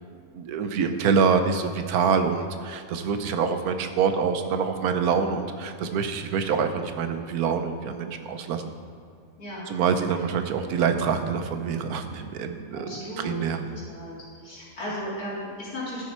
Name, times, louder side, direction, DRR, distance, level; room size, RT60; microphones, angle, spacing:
voice 1, 0.3-8.6 9.7-12.9 13.2-13.6, right 6 dB, 90° right, 7 dB, 1.3 m, -25 dB
voice 2, 9.4-9.7 12.7-14.1 14.4-16.1, equal, 90° left, -7 dB, 3.6 m, -35 dB
12.5 x 7.4 x 4.5 m, 2.2 s
omnidirectional pair, 1.5 m